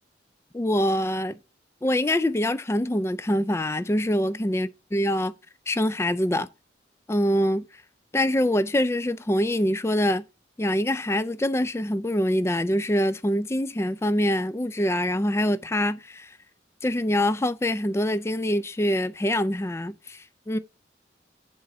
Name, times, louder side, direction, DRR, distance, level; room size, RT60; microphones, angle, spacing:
voice 1, 0.5-1.4 1.8-5.3 5.7-6.5 7.1-7.6 8.1-10.2 10.6-16.3 16.8-20.6, left 1 dB, 15° left, 0.3 m, -24 dB
7.5 x 4.2 x 5.9 m
head